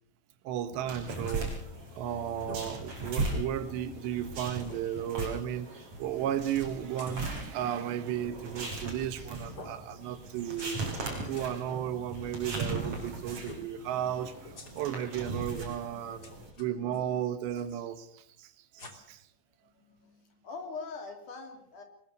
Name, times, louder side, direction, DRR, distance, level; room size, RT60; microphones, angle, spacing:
voice 1, 0.4-1.5 2.0-10.9 11.3-16.3 16.6-19.2, right 10 dB, 80° right, 11 dB, 3.5 m, -34 dB
sound 1, 0.7-1.4 1.8-1.9 2.2-2.6 3.2-3.3 3.9-4.0 4.6-4.8 7.0-7.5 8.9-9.2 9.5-9.7 10.3-10.8 11.0-11.6 12.8-13.0 13.4-13.7 14.4-15.1 15.5-15.9 16.2-17.0 17.5-17.7 18.8-18.9, left 2 dB, 25° left, 3.0 m, -48 dB
sound 2, 0.9-16.5, right 3 dB, 40° right, 5.8 m, -38 dB
voice 2, 16.3-16.6 19.7-21.8, left 4 dB, 50° left, 5 dB, 4.2 m, -43 dB
22.0 x 20.5 x 6.8 m, 0.66 s
omnidirectional pair, 5.0 m